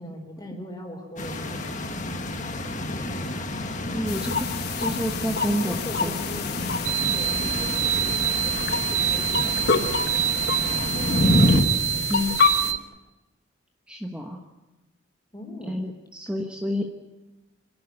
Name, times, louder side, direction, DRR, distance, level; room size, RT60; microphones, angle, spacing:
voice 1, 0.0-3.1 5.5-11.8 12.2-12.6 15.3-15.8, left 1 dB, 20° left, 3 dB, 4.3 m, -41 dB
sound 1, 1.2-11.6, left 1 dB, 40° left, 1.6 m, -28 dB
voice 2, 3.9-4.5 4.8-6.2 12.1-12.4 13.9-14.4 15.7-16.9, equal, 5° right, 1 dB, 1.3 m, -29 dB
sound 2, 4.1-12.7, left 6 dB, 55° left, 1.3 m, -29 dB
sound 3, 6.8-12.8, right 13 dB, 90° right, 0.7 m, -26 dB
26.5 x 11.5 x 9.8 m, 1.1 s
head